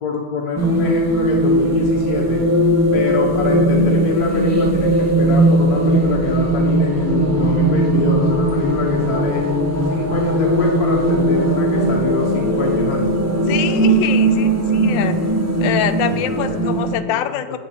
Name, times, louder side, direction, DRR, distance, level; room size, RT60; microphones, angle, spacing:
voice 1, 0.0-2.4 2.9-9.4 9.9-13.1 16.1-16.6 17.1-17.6, left 4 dB, 55° left, -2 dB, 1.5 m, -25 dB
sound 1, 0.6-16.9, right 1 dB, 15° right, 0.7 m, -18 dB
voice 2, 13.5-15.2 15.6-17.6, left 10 dB, 85° left, 10 dB, 1.3 m, -25 dB
7.6 x 7.2 x 5.5 m, 1.3 s
omnidirectional pair, 2.0 m